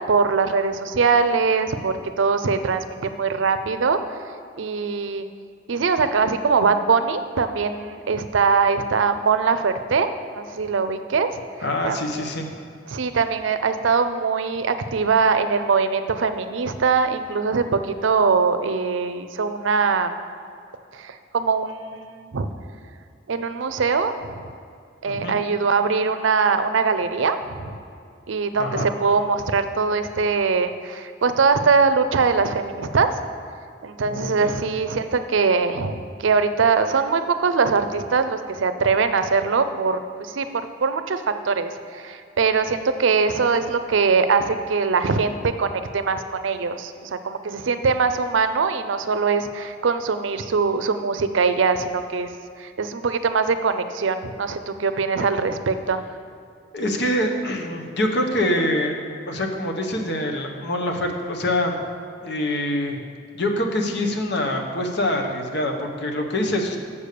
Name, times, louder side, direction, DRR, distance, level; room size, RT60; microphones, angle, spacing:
voice 1, 0.1-4.0 4.6-5.3 5.7-11.4 11.8-12.3 12.9-20.1 20.9-22.5 23.3-24.3 25.0-27.8 28.3-33.2 33.8-40.5 40.8-52.3 52.6-56.0, right 5 dB, 75° right, 10 dB, 0.5 m, -22 dB
voice 2, 11.6-12.5 25.1-25.4 28.6-28.9 34.1-34.5 56.7-59.0 59.3-61.8 62.2-63.0 63.3-66.8, left 1 dB, 60° left, 3 dB, 1.1 m, -25 dB
7.1 x 6.8 x 6.6 m, 2.4 s
head